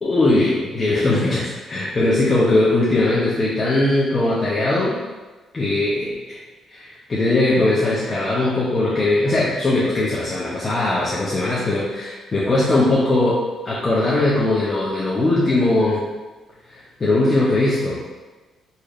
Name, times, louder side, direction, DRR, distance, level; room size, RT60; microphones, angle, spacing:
voice 1, 0.0-5.0 5.5-6.4 6.7-16.0 16.7-18.0, left 2 dB, 35° left, -7 dB, 0.7 m, -20 dB
4.0 x 3.1 x 2.5 m, 1.2 s
cardioid pair, 90°, 0 cm